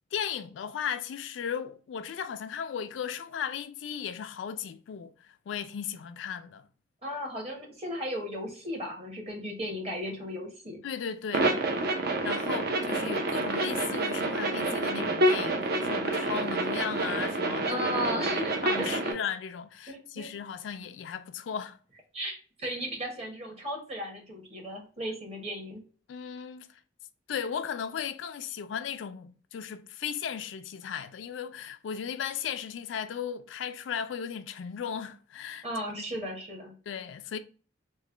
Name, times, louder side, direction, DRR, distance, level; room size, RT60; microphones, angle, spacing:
voice 1, 0.1-6.7 10.8-11.5 12.2-18.3 18.6-21.8 26.1-26.8 27.3-35.7 36.0-36.1 36.9-37.4, left 7 dB, 80° left, 0.3 m, -36 dB
voice 2, 7.0-10.8 17.7-19.1 19.9-20.3 22.1-25.8 35.6-36.7, equal, 35° right, 1.1 m, -36 dB
sound 1, 11.3-19.1, right 2 dB, 60° right, 0.6 m, -28 dB
3.1 x 2.2 x 3.6 m
head